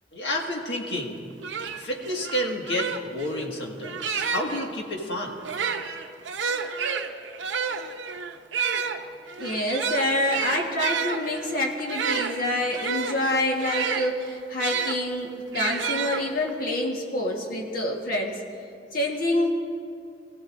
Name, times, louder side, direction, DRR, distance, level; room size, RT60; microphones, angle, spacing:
voice 1, 0.1-1.3 1.7-5.4, left 1 dB, 70° left, 0 dB, 1.8 m, -30 dB
sound 1, 1.0-1.1 1.4-4.7 5.4-15.0 15.5-16.6, right 6 dB, 90° right, 0.7 m, -30 dB
voice 2, 9.4-18.4 18.9-19.6, left 1 dB, 50° left, 0 dB, 1.4 m, -27 dB
21.5 x 15.0 x 2.6 m, 2.4 s
head